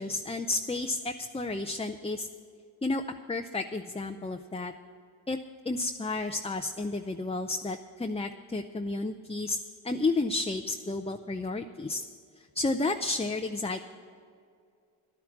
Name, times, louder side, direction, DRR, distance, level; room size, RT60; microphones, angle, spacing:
voice 1, 0.0-2.3 2.8-3.0 3.3-4.7 5.3-5.4 5.7-9.6 9.8-12.0 12.5-13.8, left 3 dB, 10° left, 5 dB, 0.6 m, -31 dB
11.0 x 10.5 x 7.3 m, 2.3 s
cardioid pair, 50°, 49 cm